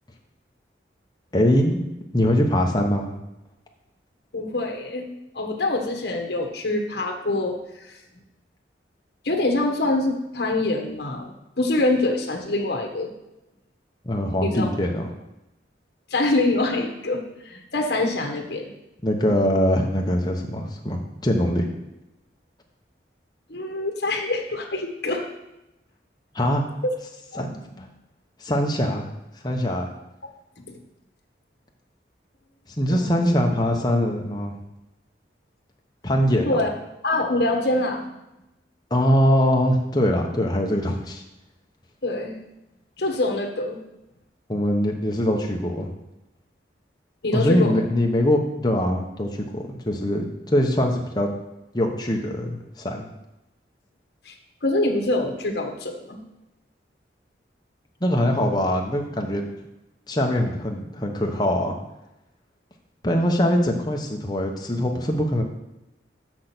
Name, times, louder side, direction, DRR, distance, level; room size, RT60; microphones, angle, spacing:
voice 1, 1.3-1.8 2.1-3.1 14.0-15.0 19.0-21.7 26.3-26.6 27.4-27.5 27.8-27.9 28.4-29.1 29.4-29.9 32.8-34.6 36.0-36.6 38.9-41.2 44.5-45.9 47.3-51.3 51.7-53.1 58.0-59.4 60.1-61.7 63.0-65.4, equal, 20° left, 1 dB, 1.0 m, -22 dB
voice 2, 4.3-7.9 9.2-13.1 14.4-14.7 16.1-18.7 23.5-25.2 26.8-26.9 27.3-27.5 27.8-27.9 32.9-33.4 36.4-36.7 37.0-38.1 42.0-42.3 43.0-43.8 47.2-47.8 54.2-54.3 54.6-56.2, left 2 dB, 60° left, 2 dB, 1.3 m, -25 dB
6.6 x 6.2 x 6.0 m, 0.93 s
head